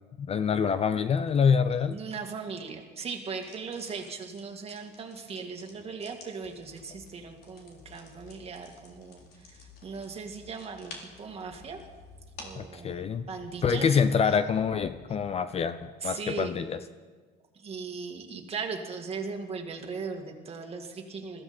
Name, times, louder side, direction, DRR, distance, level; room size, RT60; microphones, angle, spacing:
voice 1, 0.2-2.0 12.6-13.3 13.6-16.8, left 6 dB, 30° left, 12 dB, 0.7 m, -26 dB
voice 2, 1.9-11.8 12.4-14.4 16.0-16.6 17.5-21.4, right 5 dB, 30° right, 3 dB, 2.3 m, -38 dB
sound 1, 3.3-12.7, left 3 dB, 55° left, 3.6 m, -53 dB
sound 2, 6.4-15.4, left 2 dB, 10° left, 1.7 m, -55 dB
21.5 x 15.0 x 4.5 m, 1.4 s
cardioid pair, 110°, 19 cm